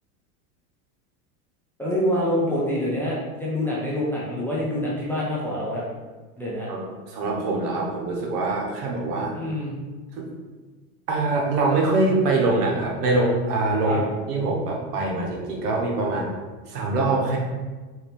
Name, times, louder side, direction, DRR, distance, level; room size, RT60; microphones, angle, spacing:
voice 1, 1.8-5.9 6.4-6.7 9.3-9.8 13.8-14.0, left 1 dB, 5° left, -7 dB, 0.3 m, -26 dB
voice 2, 6.7-9.3 10.2-10.3 11.1-14.0 14.3-16.3 16.7-17.4, right 2 dB, 90° right, -1 dB, 1.2 m, -24 dB
4.0 x 2.8 x 3.4 m, 1.3 s
supercardioid pair, 130°, 45 cm